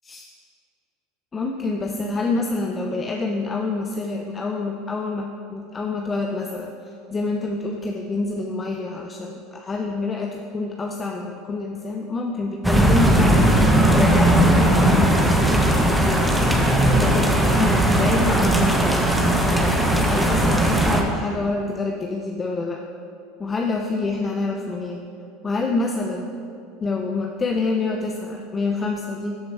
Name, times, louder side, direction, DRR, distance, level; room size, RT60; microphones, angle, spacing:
voice 1, 1.3-6.7 7.1-16.5 17.0-19.8 20.1-22.8 23.4-25.0 25.4-26.3 26.8-29.4, left 3 dB, 25° left, 2 dB, 0.8 m, -27 dB
sound 1, 12.6-21.0, right 1 dB, 5° right, 1.3 m, -18 dB
13.5 x 6.4 x 4.6 m, 2.6 s
hypercardioid pair, 85°, 0 cm